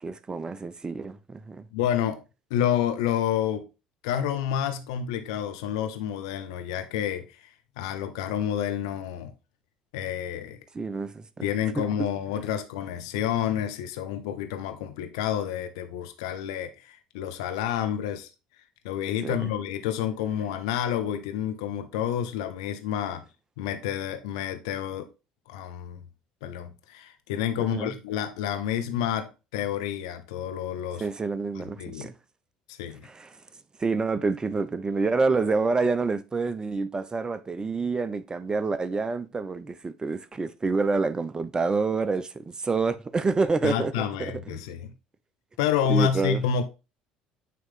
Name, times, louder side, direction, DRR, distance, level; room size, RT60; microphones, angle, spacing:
voice 1, 0.0-1.7 10.7-11.5 11.8-12.1 19.2-19.5 27.6-28.0 31.0-32.1 33.0-33.4 33.8-43.9 44.2-44.6 45.9-46.4, right 4 dB, 25° right, 0.8 m, -28 dB
voice 2, 1.7-2.2 2.5-3.6 4.0-7.5 7.8-9.3 9.9-10.6 11.4-18.3 18.8-23.2 23.6-25.1 25.5-26.0 26.4-31.1 31.5-32.1 32.7-33.1 43.6-44.9 45.6-46.6, left 9 dB, 80° left, 0.8 m, -29 dB
9.2 x 3.2 x 3.8 m
hypercardioid pair, 70°, 3 cm